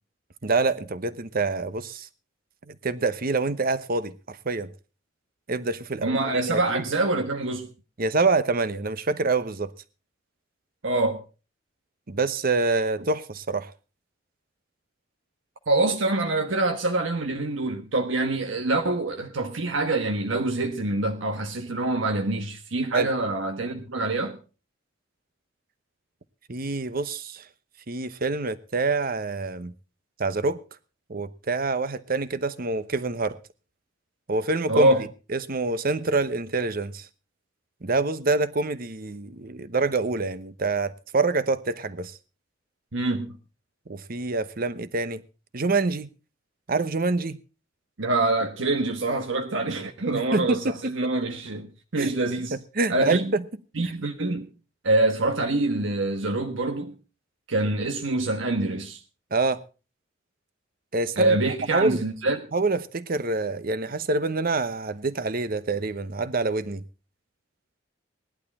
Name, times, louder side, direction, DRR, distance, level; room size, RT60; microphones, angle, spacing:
voice 1, 0.4-2.1 2.7-4.7 5.5-6.8 8.0-9.7 12.1-13.7 22.9-23.1 26.5-27.4 27.9-29.7 30.2-30.6 31.1-33.4 34.3-34.9 35.3-37.1 37.8-42.2 43.9-45.2 45.5-46.1 46.7-47.4 50.1-50.8 52.0-52.1 52.5-53.4 59.3-59.6 60.9-61.4 61.7-62.0 62.5-66.8, right 3 dB, 50° right, 0.9 m, -26 dB
voice 2, 6.0-7.7 10.8-11.2 15.7-24.4 34.7-35.0 42.9-43.4 48.0-51.7 51.9-52.6 52.9-53.3 53.7-54.5 54.8-57.0 57.5-59.0 61.2-62.4, right 2 dB, 80° right, 1.3 m, -25 dB
17.5 x 11.5 x 4.2 m
head